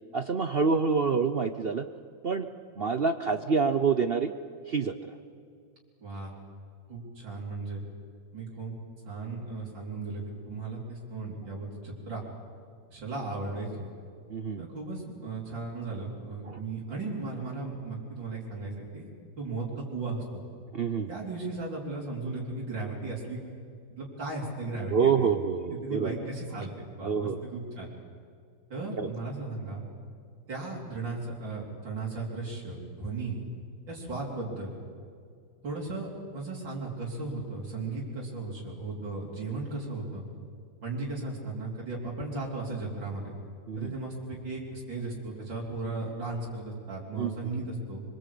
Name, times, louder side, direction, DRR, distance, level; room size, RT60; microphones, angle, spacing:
voice 1, 0.1-1.8 2.2-2.5 2.8-4.3 4.7-4.9 14.3-14.7 16.4-16.6 20.7-21.1 24.9-26.1 27.0-27.4 29.0-29.1 43.7-43.9 47.2-47.3, right 5 dB, 55° right, 9 dB, 0.6 m, -27 dB
voice 2, 6.0-6.3 6.9-7.8 8.3-8.8 9.0-12.2 12.9-13.9 14.6-19.1 19.4-20.4 21.1-23.4 23.9-25.3 25.7-27.9 28.7-29.8 30.5-33.5 33.9-34.7 35.6-40.2 40.8-43.3 43.8-48.0, right 3 dB, 90° right, -4 dB, 4.6 m, -36 dB
24.5 x 23.5 x 8.5 m, 2.2 s
omnidirectional pair, 2.0 m